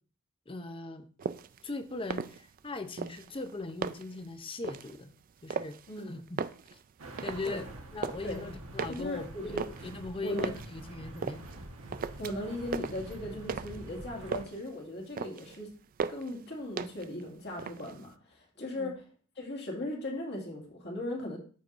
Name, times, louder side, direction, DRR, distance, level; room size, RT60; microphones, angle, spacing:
voice 1, 0.5-1.1 1.6-5.1 5.4-6.4 6.7-6.8 7.2-7.7 7.9-11.5 18.8-18.9, left 3 dB, 25° left, 8 dB, 0.6 m, -39 dB
sound 1, 1.2-1.6 2.0-2.7 3.0-4.2 4.6-5.0 5.5-6.0 6.3-7.6 7.8-8.3 8.8-10.7 11.2-11.6 11.9-12.5 12.7-13.9 14.1-14.7 15.0-15.6 16.0-16.4 16.8-17.2 17.5-18.1, right 5 dB, 40° right, 0.3 m, -37 dB
voice 2, 5.9-6.2 7.4-7.6 8.2-8.4 8.9-9.6 10.2-10.5 12.2-15.7 16.1-19.0 19.4-21.4, left 1 dB, 50° left, -1 dB, 2.1 m, -38 dB
sound 2, 7.0-14.5, right 1 dB, 80° right, 1.2 m, -46 dB
14.0 x 4.6 x 2.5 m, 0.41 s
head